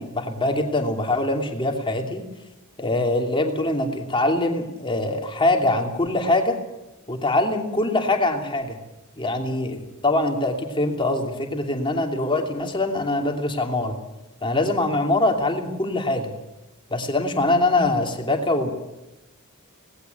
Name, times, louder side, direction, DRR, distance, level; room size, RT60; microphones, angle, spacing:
voice 1, 0.0-2.2 2.8-6.6 7.1-8.8 9.2-14.0 14.4-16.3 16.9-18.7, left 2 dB, 25° left, 3 dB, 2.8 m, -23 dB
19.0 x 16.5 x 9.4 m, 1.0 s
head